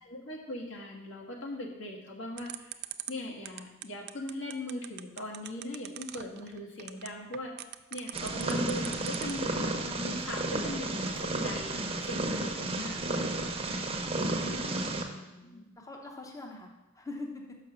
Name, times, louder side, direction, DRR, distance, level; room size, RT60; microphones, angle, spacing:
voice 1, 0.0-2.5 3.1-7.5 7.9-13.3 15.4-15.6, left 1 dB, 65° left, 0 dB, 1.5 m, -39 dB
sound 1, 2.4-9.5, right 14 dB, 50° right, 0.4 m, -41 dB
Purr, 8.1-15.0, right 2 dB, 30° right, 0.9 m, -32 dB
voice 2, 14.3-17.5, left 2 dB, 15° left, 1 dB, 0.8 m, -44 dB
6.0 x 5.8 x 6.7 m, 1.0 s
head